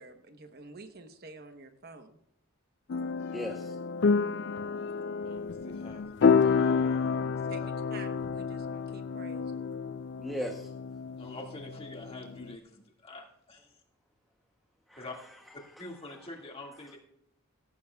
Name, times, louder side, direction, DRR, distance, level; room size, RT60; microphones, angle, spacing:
voice 1, 0.0-2.2 7.5-7.6 7.9-9.7, right 3 dB, 45° right, 1.0 m, -49 dB
sound 1, 2.9-12.6, left 5 dB, 55° left, 0.4 m, -29 dB
voice 2, 3.3-3.8 10.2-10.7 14.9-15.8, equal, ahead, 0.8 m, -39 dB
voice 3, 5.2-7.7 11.2-13.8 15.0-15.2 15.8-17.0, left 2 dB, 25° left, 1.9 m, -46 dB
17.5 x 14.5 x 2.3 m
head